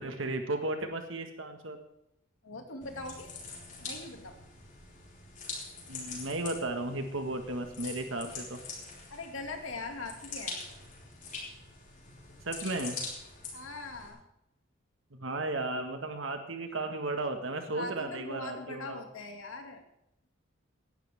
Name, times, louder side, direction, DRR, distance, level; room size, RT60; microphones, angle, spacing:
voice 1, 0.0-1.8 5.9-8.6 12.4-13.0 15.1-19.0, right 2 dB, 80° right, 5 dB, 1.7 m, -34 dB
voice 2, 2.4-3.4 3.8-4.4 9.1-10.6 13.5-14.2 17.7-19.8, left 3 dB, 90° left, 4 dB, 2.4 m, -41 dB
sound 1, 2.8-14.1, left 4 dB, 40° left, 4.7 m, -44 dB
18.5 x 12.0 x 3.6 m, 0.81 s
head